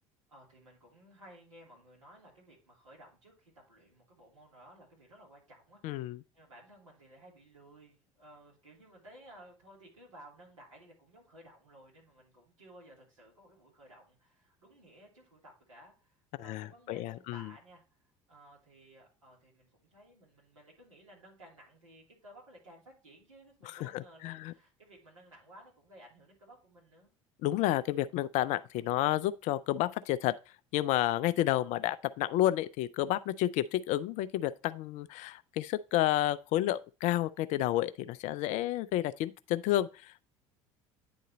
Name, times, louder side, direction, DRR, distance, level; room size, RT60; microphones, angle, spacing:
voice 1, 0.3-27.1, right 1 dB, 80° right, 3.0 m, -57 dB
voice 2, 5.8-6.2 16.4-17.5 23.7-24.5 27.4-30.4 30.7-40.3, left 14 dB, 45° left, 0.4 m, -31 dB
9.5 x 3.8 x 4.1 m
figure-of-eight pair, 65°, 17 cm